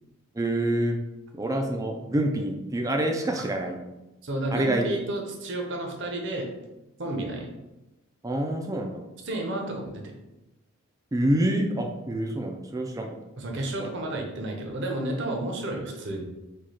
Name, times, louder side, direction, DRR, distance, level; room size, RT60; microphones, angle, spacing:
voice 1, 0.3-1.0 1.3-3.8 4.5-4.9 8.2-9.1 11.1-13.2 13.6-13.9, right 1 dB, 15° right, 2 dB, 0.4 m, -27 dB
voice 2, 4.2-6.5 7.0-7.5 9.2-10.1 13.4-16.2, right 1 dB, 55° right, 1 dB, 0.8 m, -31 dB
4.9 x 2.3 x 4.2 m, 0.99 s
head